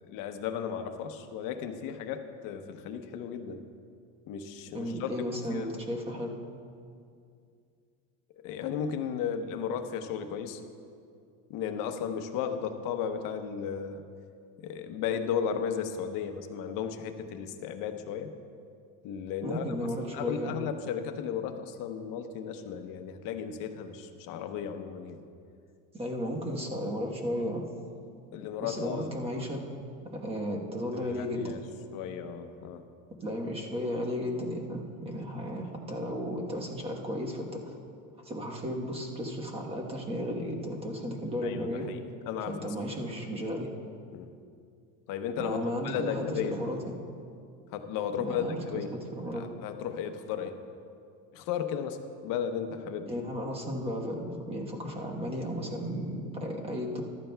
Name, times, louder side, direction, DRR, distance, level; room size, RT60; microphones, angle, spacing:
voice 1, 0.1-3.6 4.3-5.1 5.5-5.7 8.4-10.6 11.5-14.0 14.6-18.3 19.0-19.7 20.1-25.2 28.3-29.1 31.0-31.6 31.9-32.8 41.4-42.0 42.3-42.7 44.1-44.3 45.1-46.6 47.7-48.9 49.4-50.6 51.3-53.1, left 8 dB, 55° left, 7 dB, 0.8 m, -35 dB
voice 2, 4.7-6.4 19.4-20.6 25.9-27.6 28.6-29.6 30.1-31.6 33.2-37.8 38.2-41.8 42.5-43.7 45.4-47.0 48.2-49.5 53.0-57.0, equal, 15° right, 0 dB, 1.1 m, -34 dB
14.5 x 12.0 x 2.3 m, 2.4 s
cardioid pair, 150°, 39 cm